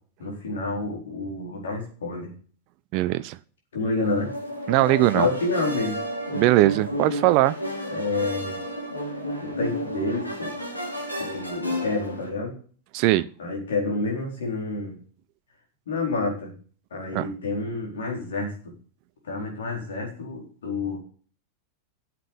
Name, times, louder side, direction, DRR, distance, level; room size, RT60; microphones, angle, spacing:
voice 1, 0.2-2.3 3.7-4.3 5.1-6.0 7.9-8.6 9.4-10.5 11.2-12.5 13.4-15.0 15.9-16.5 16.9-18.7 19.2-21.0, left 3 dB, 65° left, 0 dB, 4.4 m, -29 dB
voice 2, 2.9-3.4 4.7-5.3 6.3-7.6 12.9-13.3 17.1-17.3, right 17 dB, 45° right, 16 dB, 0.4 m, -20 dB
sound 1, 4.0-12.3, equal, 85° left, 2.9 m, -32 dB
9.0 x 7.6 x 8.3 m, 0.43 s
figure-of-eight pair, 90°, 0 cm